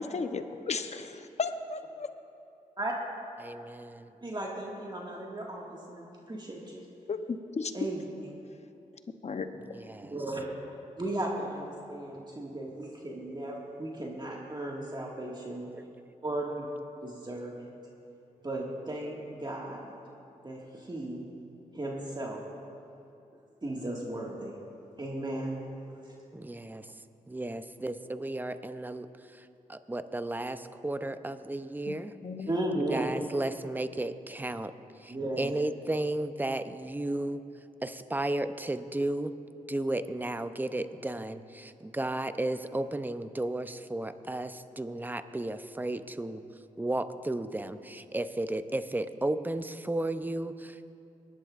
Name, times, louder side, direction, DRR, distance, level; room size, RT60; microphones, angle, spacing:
voice 1, 0.0-2.1 7.1-7.7 9.2-9.5 31.9-32.0 32.2-32.6, left 4 dB, 50° left, 8 dB, 0.8 m, -34 dB
voice 2, 3.4-4.1 9.7-10.1 15.7-15.8 26.3-26.9 27.3-29.1 29.3-32.1 32.9-34.7 35.0-37.4 37.8-39.3 39.7-46.4 46.8-50.8, right 1 dB, 15° right, 11 dB, 0.6 m, -34 dB
voice 3, 4.2-6.8 7.7-8.1 10.1-10.5 11.0-15.6 16.2-16.7 17.0-17.7 18.4-20.0 20.4-21.2 21.7-22.4 23.6-24.6 25.0-25.6 32.5-33.1 35.1-35.5, right 1 dB, 30° right, -2 dB, 1.9 m, -35 dB
20.0 x 11.0 x 2.5 m, 2.6 s
cardioid pair, 50°, 14 cm